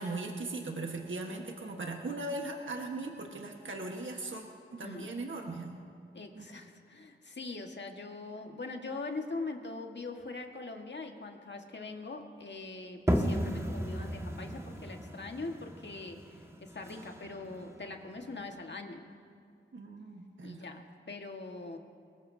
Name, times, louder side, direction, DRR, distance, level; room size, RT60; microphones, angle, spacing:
voice 1, 0.0-4.4 4.8-5.8 6.3-6.5 19.7-20.7, right 2 dB, 70° right, 2 dB, 1.5 m, -39 dB
voice 2, 6.1-19.1 20.4-21.8, left 3 dB, 60° left, 3 dB, 1.7 m, -42 dB
sound 1, 13.1-18.5, equal, 15° right, 1.7 m, -35 dB
22.5 x 19.0 x 2.8 m, 2.4 s
cardioid pair, 45°, 21 cm